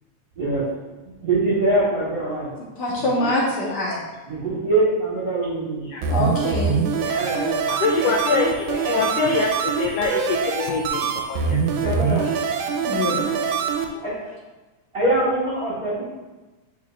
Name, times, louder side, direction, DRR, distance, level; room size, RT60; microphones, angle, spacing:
voice 1, 0.4-0.7 1.2-2.5 3.0-3.3 4.2-6.4 7.2-7.7 8.7-9.0 11.8-12.3 14.0-14.2 14.9-16.0, right 2 dB, 40° right, -8 dB, 1.4 m, -24 dB
voice 2, 2.8-4.0 6.1-6.9 12.9-13.2 13.9-14.0, left 1 dB, 60° left, -5 dB, 1.7 m, -24 dB
sound 1, 6.0-13.9, right 6 dB, 85° right, 2.0 m, -24 dB
voice 3, 7.7-11.6 11.8-11.9, left 5 dB, 80° left, 0 dB, 1.4 m, -24 dB
9.6 x 4.4 x 2.4 m, 1.2 s
omnidirectional pair, 3.4 m